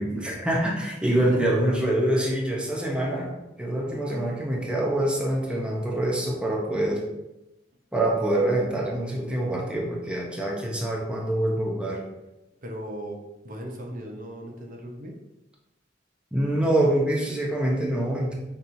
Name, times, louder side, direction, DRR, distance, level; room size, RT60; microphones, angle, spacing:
voice 1, 0.0-3.3 3.6-7.0 7.9-12.1 16.3-18.3, right 1 dB, 5° right, -3 dB, 0.6 m, -25 dB
voice 2, 1.0-1.5 12.6-15.1, right 1 dB, 50° right, 1 dB, 0.6 m, -37 dB
5.3 x 2.9 x 2.5 m, 0.96 s
head